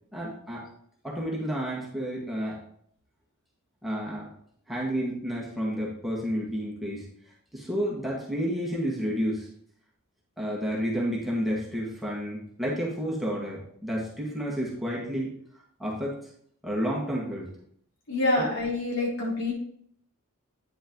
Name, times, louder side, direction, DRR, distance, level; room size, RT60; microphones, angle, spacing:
voice 1, 0.1-0.6 1.0-2.6 3.8-4.3 4.7-7.0 7.5-9.5 10.4-15.3 15.8-16.1 16.6-17.5 18.3-18.5, equal, ahead, -6 dB, 2.0 m, -30 dB
voice 2, 18.1-19.5, left 2 dB, 65° left, -5 dB, 3.7 m, -26 dB
9.4 x 6.4 x 3.1 m, 0.64 s
head